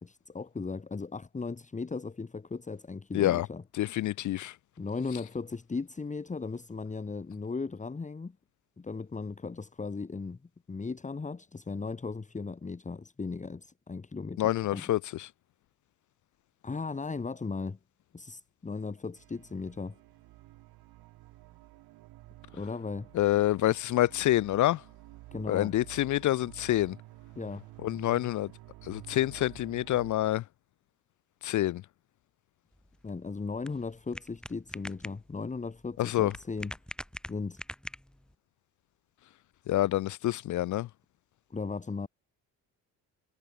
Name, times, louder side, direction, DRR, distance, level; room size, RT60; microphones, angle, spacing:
voice 1, 0.0-3.6 4.8-8.4 8.8-10.4 10.7-14.8 16.6-17.8 18.1-20.0 22.5-23.1 25.3-25.7 27.4-27.7 33.0-36.7 37.3-37.6 41.5-42.1, left 4 dB, 20° left, 1.7 m, -37 dB
voice 2, 3.1-3.5 3.8-4.5 14.4-15.3 23.1-24.8 25.5-27.0 27.8-28.5 28.8-30.4 31.4-31.8 36.0-36.3 39.7-40.9, left 14 dB, 55° left, 0.5 m, -27 dB
sound 1, 19.1-30.1, right 18 dB, 85° right, 6.3 m, -51 dB
sound 2, 32.7-38.4, equal, ahead, 3.6 m, -45 dB
cardioid pair, 90°, 36 cm